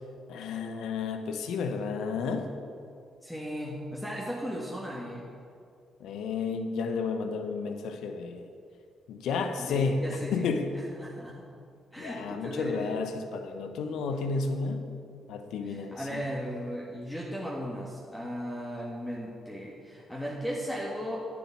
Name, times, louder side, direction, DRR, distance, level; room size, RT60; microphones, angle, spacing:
voice 1, 0.3-2.5 6.0-8.5 9.1-10.7 12.0-14.9 15.3-16.2, left 4 dB, 75° left, 6 dB, 0.9 m, -32 dB
voice 2, 3.2-5.3 9.6-10.3 11.0-11.4 11.9-13.0 15.7-21.2, equal, 10° left, -4 dB, 1.9 m, -36 dB
9.3 x 7.5 x 6.0 m, 2.4 s
supercardioid pair, 55°, 0 cm